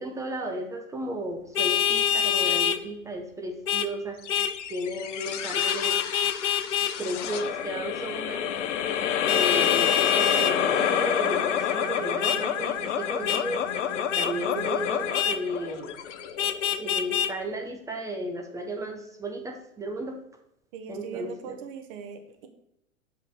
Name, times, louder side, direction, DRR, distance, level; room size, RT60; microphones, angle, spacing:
voice 1, 0.0-4.2 4.7-6.0 7.0-8.5 9.3-15.9 16.8-20.2 20.9-21.6, right 1 dB, 10° right, 3 dB, 0.5 m, -34 dB
Vehicle horn car horn honking, 1.5-2.8 3.7-3.9 4.3-4.5 5.5-6.9 9.3-10.5 12.2-12.4 13.3-13.4 14.1-14.3 15.1-15.4 16.4-17.3, left 8 dB, 85° left, 0.8 m, -25 dB
sound 1, 4.2-16.9, left 9 dB, 55° left, 0.9 m, -29 dB
voice 2, 20.7-22.5, right 7 dB, 40° right, 7 dB, 1.3 m, -40 dB
6.7 x 5.7 x 5.5 m, 0.79 s
hypercardioid pair, 115°, 42 cm